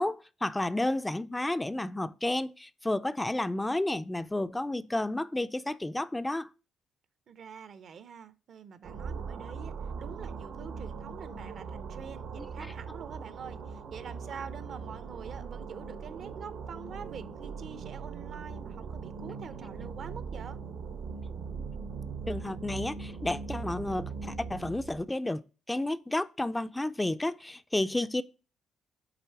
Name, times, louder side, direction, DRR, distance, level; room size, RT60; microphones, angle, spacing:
voice 1, 0.0-6.5 12.4-12.5 22.3-25.4 25.7-28.2, left 1 dB, 10° left, 0.3 m, -31 dB
voice 2, 7.3-20.6, right 6 dB, 60° right, 0.6 m, -46 dB
sound 1, 8.8-25.0, right 5 dB, 80° right, 1.1 m, -40 dB
8.9 x 3.3 x 4.5 m
cardioid pair, 90°, 0 cm